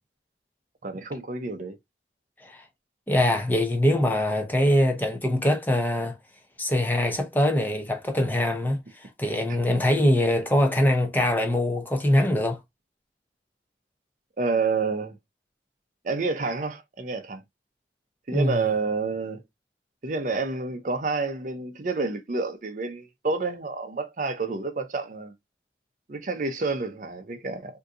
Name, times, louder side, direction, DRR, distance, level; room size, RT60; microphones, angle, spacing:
voice 1, 0.8-1.8 14.4-15.2 16.0-17.4 18.3-19.4 20.0-25.3 26.1-27.8, right 4 dB, 45° right, 0.5 m, -29 dB
voice 2, 3.1-6.2 6.6-12.6 18.3-18.7, left 1 dB, 10° left, 0.6 m, -23 dB
3.6 x 2.6 x 2.5 m
head